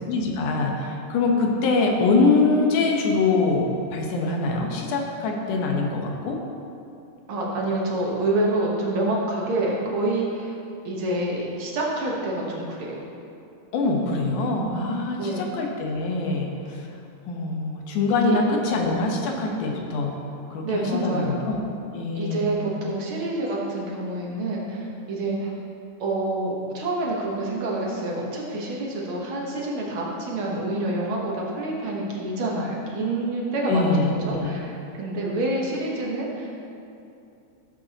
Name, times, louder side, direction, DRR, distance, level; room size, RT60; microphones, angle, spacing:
voice 1, 0.1-6.4 13.7-16.9 17.3-20.2 20.5-21.6 21.9-22.5 33.6-34.6, left 3 dB, 80° left, 1 dB, 2.5 m, -24 dB
voice 2, 7.3-10.5 10.8-13.0 15.1-15.5 18.2-18.3 20.6-21.4 22.1-25.5 26.0-34.7 34.9-36.5, right 2 dB, 55° right, -3 dB, 1.7 m, -27 dB
14.5 x 7.8 x 2.9 m, 2.7 s
omnidirectional pair, 3.6 m